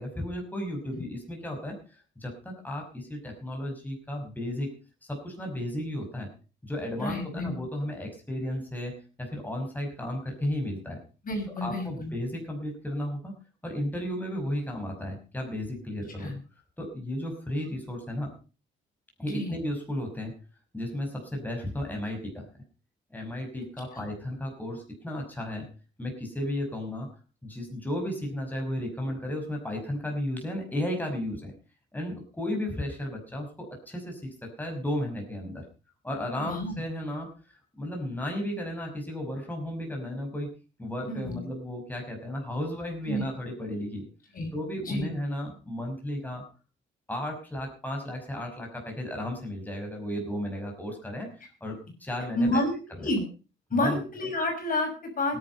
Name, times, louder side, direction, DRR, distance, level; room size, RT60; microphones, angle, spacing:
voice 1, 0.0-4.7 5.1-6.3 6.6-11.0 11.6-13.3 13.6-16.3 16.8-18.3 19.2-20.3 20.7-22.5 23.1-25.7 26.0-27.1 27.4-31.5 31.9-35.6 36.0-37.3 37.7-40.5 40.8-44.1 44.5-46.4 47.1-51.3 51.6-52.6 53.0-53.1 53.7-54.0 55.3-55.4, left 1 dB, 10° left, 1 dB, 5.6 m, -34 dB
voice 2, 7.0-7.5 11.2-12.1 16.2-16.4 19.3-19.5 23.9-24.0 36.4-36.8 41.1-41.4 43.0-43.2 44.3-44.5 44.8-45.1 52.4-52.7 53.0-53.2 53.7-55.4, left 1 dB, 45° left, 2 dB, 6.0 m, -29 dB
17.0 x 11.0 x 5.4 m, 0.35 s
cardioid pair, 90°, 20 cm